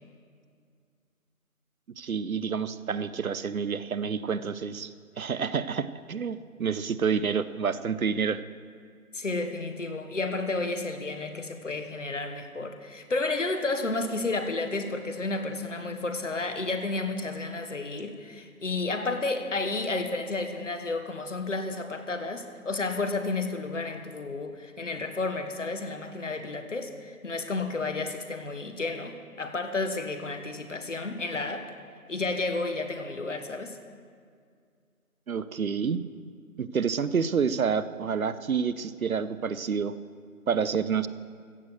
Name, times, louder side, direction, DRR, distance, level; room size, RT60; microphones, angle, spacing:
voice 1, 2.0-4.9 5.2-8.4 35.3-36.0 36.6-39.9 40.5-41.1, right 6 dB, 70° right, 14 dB, 0.7 m, -28 dB
voice 2, 9.1-31.7 32.1-33.8, left 3 dB, 55° left, 7 dB, 1.3 m, -31 dB
15.0 x 6.4 x 8.0 m, 2.1 s
figure-of-eight pair, 180°, 43 cm